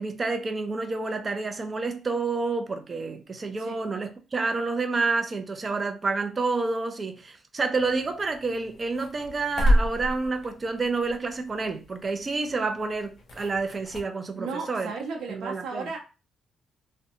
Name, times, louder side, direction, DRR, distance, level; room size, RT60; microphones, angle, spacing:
voice 1, 0.0-14.9 15.3-15.9, right 3 dB, 35° right, 0.5 m, -29 dB
sound 1, 7.7-14.0, equal, 55° left, 0.7 m, -30 dB
voice 2, 14.4-16.0, right 4 dB, 80° right, 0.8 m, -34 dB
2.6 x 2.2 x 2.7 m
cardioid pair, 90°, 0 cm